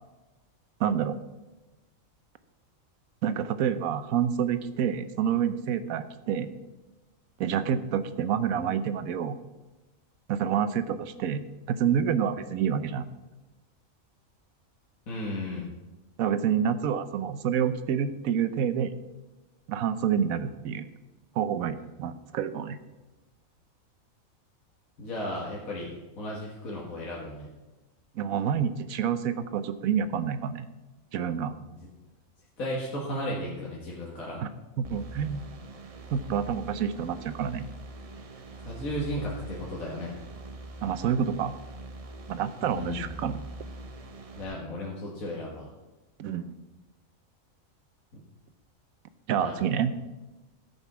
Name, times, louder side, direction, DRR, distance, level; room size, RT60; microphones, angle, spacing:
voice 1, 0.8-1.2 3.2-6.5 7.4-9.4 10.3-13.0 16.2-19.0 19.7-20.9 21.4-22.8 28.2-30.7 31.1-31.5 34.4-34.5 34.8-35.4 36.1-37.7 40.8-41.5 42.3-43.4 46.2-46.5 49.3-49.9, right 8 dB, 85° right, 12 dB, 1.1 m, -28 dB
voice 2, 15.1-15.7 25.0-27.5 31.8-31.9 32.6-34.4 38.6-40.2 42.7-43.1 44.4-45.7 49.3-49.6, left 1 dB, 80° left, -4 dB, 2.0 m, -35 dB
sound 1, 34.8-44.4, right 2 dB, 35° right, 0.6 m, -43 dB
13.5 x 5.3 x 6.0 m, 1.1 s
omnidirectional pair, 1.4 m